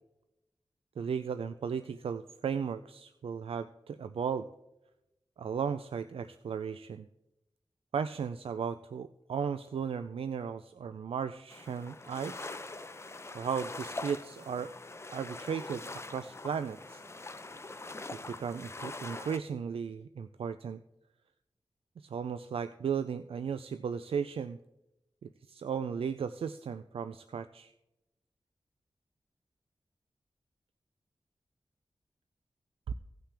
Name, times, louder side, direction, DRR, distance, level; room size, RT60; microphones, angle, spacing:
voice 1, 1.0-4.5 5.4-7.1 7.9-12.5 13.3-14.7 15.1-17.0 18.1-20.8 22.0-24.6 25.2-27.7 32.9-33.0, right 7 dB, 85° right, 11 dB, 0.4 m, -36 dB
sound 1, 11.5-19.4, left 2 dB, 30° left, 0.7 m, -43 dB
17.0 x 5.8 x 3.4 m, 0.91 s
wide cardioid pair, 75°, 9 cm